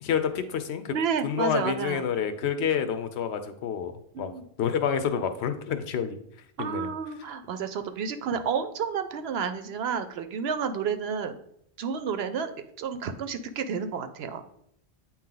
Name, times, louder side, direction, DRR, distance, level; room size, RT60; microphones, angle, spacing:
voice 1, 0.0-1.0 1.2-4.3 4.6-6.2 6.6-6.9, left 7 dB, 80° left, 9 dB, 0.9 m, -28 dB
voice 2, 0.9-2.0 4.1-4.4 6.6-11.3 11.8-14.4, right 6 dB, 70° right, 9 dB, 0.8 m, -30 dB
8.6 x 2.9 x 3.8 m, 0.69 s
omnidirectional pair, 1.1 m